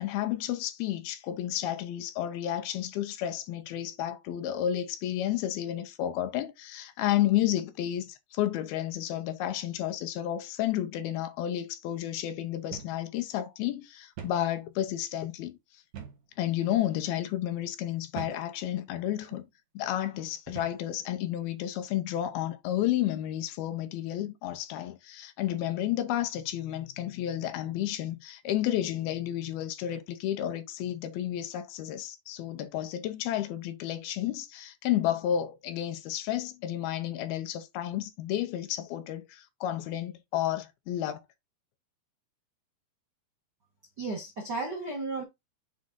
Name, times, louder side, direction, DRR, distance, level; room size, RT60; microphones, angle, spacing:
voice 1, 0.0-15.6 16.4-19.5 19.8-41.2, left 12 dB, 75° left, 2.5 m, -31 dB
sound 1, 12.7-13.0 13.3-13.4 14.2-14.5 15.9-16.3 17.0-17.2 18.2-18.5 19.2-19.5 20.5-20.9, right 7 dB, 65° right, 3.0 m, -43 dB
voice 2, 44.0-45.2, right 3 dB, 85° right, 0.9 m, -34 dB
7.5 x 3.6 x 3.9 m
omnidirectional pair, 4.7 m